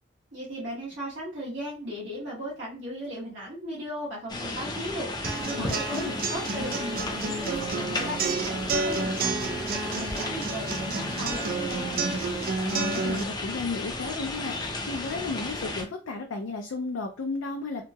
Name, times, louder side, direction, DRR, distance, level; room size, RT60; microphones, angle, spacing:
voice 1, 0.3-12.0, equal, 65° right, -7 dB, 1.1 m, -37 dB
sound 1, 4.3-15.8, left 2 dB, 20° left, 0.4 m, -34 dB
sound 2, 5.2-13.2, right 4 dB, 45° right, 0.3 m, -30 dB
voice 2, 5.5-6.2 12.6-14.6 14.9-17.8, left 3 dB, 80° left, 3 dB, 0.4 m, -33 dB
2.9 x 2.6 x 2.2 m, 0.33 s
head